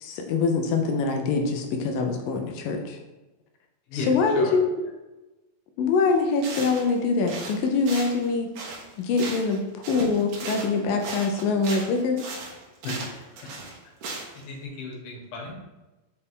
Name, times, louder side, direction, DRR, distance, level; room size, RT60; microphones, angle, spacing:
voice 1, 0.0-3.0 4.1-4.6 5.8-8.5 9.0-12.2, left 4 dB, 80° left, 3 dB, 2.4 m, -24 dB
voice 2, 3.9-4.6 12.8-13.5 14.1-15.5, left 2 dB, 65° left, -1 dB, 2.8 m, -35 dB
sound 1, 6.1-6.2 6.4-7.0 7.3-9.6 9.8-14.4, right 3 dB, 65° right, 2.6 m, -37 dB
6.6 x 5.6 x 3.8 m, 1.1 s
omnidirectional pair, 4.0 m